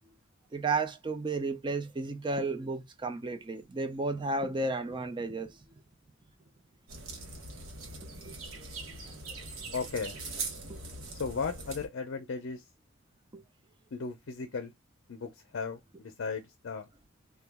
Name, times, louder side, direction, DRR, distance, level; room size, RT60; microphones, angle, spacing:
voice 1, 0.5-5.5 8.1-8.4 10.7-10.8 13.3-13.4, right 3 dB, 20° right, 0.5 m, -33 dB
sound 1, 6.9-11.9, right 3 dB, 70° right, 1.0 m, -41 dB
voice 2, 9.7-10.2 11.2-12.6 13.9-14.7 15.1-16.9, left 5 dB, 60° left, 0.5 m, -36 dB
2.9 x 2.3 x 3.4 m
head